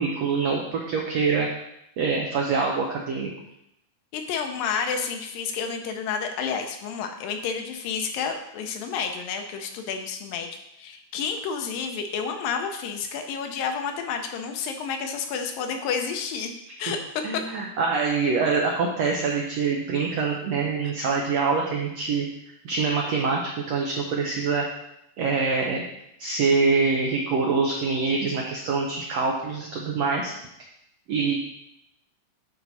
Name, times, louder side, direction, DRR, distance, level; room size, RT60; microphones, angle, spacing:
voice 1, 0.0-1.5 2.0-3.3 17.2-22.3 22.6-23.4 23.7-24.6 25.2-25.8 26.2-30.3 31.1-31.3, right 4 dB, 80° right, -1 dB, 1.5 m, -25 dB
voice 2, 4.1-10.5 10.8-16.5 16.8-17.0 17.3-17.4 20.8-20.9, left 6 dB, 80° left, 5 dB, 2.5 m, -30 dB
10.5 x 4.5 x 4.1 m, 0.81 s
omnidirectional pair, 4.1 m